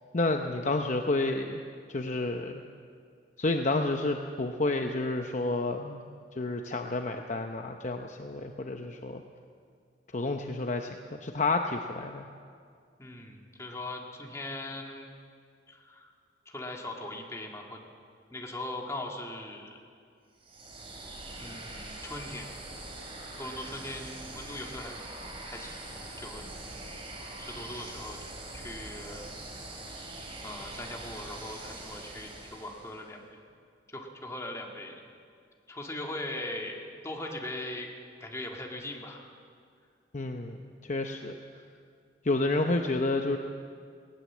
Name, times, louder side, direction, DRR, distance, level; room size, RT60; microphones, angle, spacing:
voice 1, 0.1-1.6 1.9-2.6 3.4-6.0 6.3-9.2 10.1-12.2 40.1-41.4 42.2-43.4, left 2 dB, 40° left, 4 dB, 0.8 m, -30 dB
voice 2, 13.0-15.1 15.7-16.1 16.5-17.8 18.3-19.8 21.4-22.5 23.4-25.0 25.4-25.8 26.2-26.4 27.4-29.3 30.4-33.4 33.9-35.0 35.7-37.9 38.2-39.3, left 1 dB, 15° left, 0 dB, 2.1 m, -40 dB
sound 1, 20.4-33.1, right 2 dB, 30° right, 3.2 m, -43 dB
19.0 x 18.5 x 7.4 m, 2.2 s
head